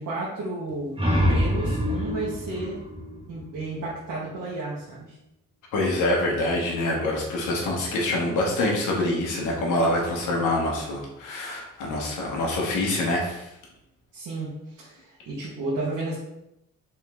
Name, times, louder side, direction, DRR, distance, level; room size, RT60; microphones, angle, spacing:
voice 1, 0.0-2.8 3.3-5.1 14.1-16.2, right 2 dB, 80° right, -6 dB, 1.2 m, -32 dB
sound 1, 0.7-4.1, equal, 15° right, 1.5 m, -26 dB
voice 2, 5.7-13.5, left 1 dB, 90° left, -2 dB, 1.2 m, -25 dB
3.7 x 3.1 x 3.5 m, 0.85 s
cardioid pair, 90°, 30 cm